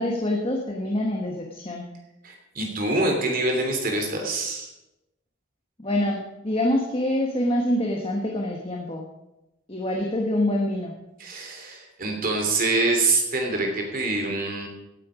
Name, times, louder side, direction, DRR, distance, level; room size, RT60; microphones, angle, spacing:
voice 1, 0.0-1.9 5.8-9.0 9.7-10.9, left 1 dB, 25° left, 0 dB, 1.4 m, -25 dB
voice 2, 2.2-4.7 11.2-14.7, right 2 dB, 45° right, 3 dB, 3.0 m, -25 dB
17.5 x 8.7 x 5.1 m, 0.94 s
head